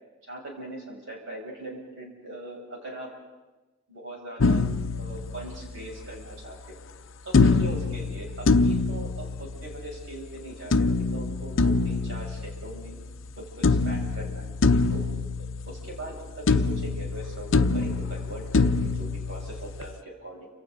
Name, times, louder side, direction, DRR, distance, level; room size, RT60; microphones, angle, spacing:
voice 1, 0.2-3.1 3.9-4.6 4.9-6.8 7.2-13.0 13.4-14.5 14.9-15.0 15.4-20.5, right 1 dB, 65° right, -2 dB, 7.3 m, -40 dB
sound 1, 4.4-5.9 7.3-10.0 10.7-13.3 13.6-16.2 16.5-19.9, left 3 dB, 70° left, 0.7 m, -25 dB
29.5 x 27.0 x 4.0 m, 1.1 s
head